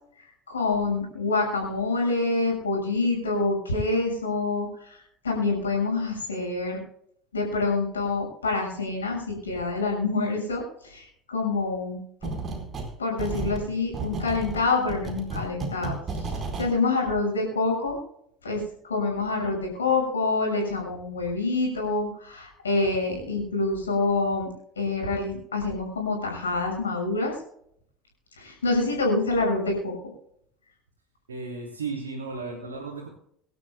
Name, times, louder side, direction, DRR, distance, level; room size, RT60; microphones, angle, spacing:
voice 1, 0.5-5.0 5.2-6.8 7.3-12.0 13.0-16.3 16.6-18.0 18.4-24.5 24.8-27.4 28.4-29.9, left 3 dB, 85° left, 0 dB, 6.5 m, -26 dB
sound 1, 12.2-12.9 13.2-16.7, right 3 dB, 35° right, 4.4 m, -33 dB
voice 2, 31.3-33.1, right 4 dB, 80° right, -2 dB, 3.4 m, -34 dB
25.0 x 12.0 x 2.3 m, 0.68 s
figure-of-eight pair, 65°, 0 cm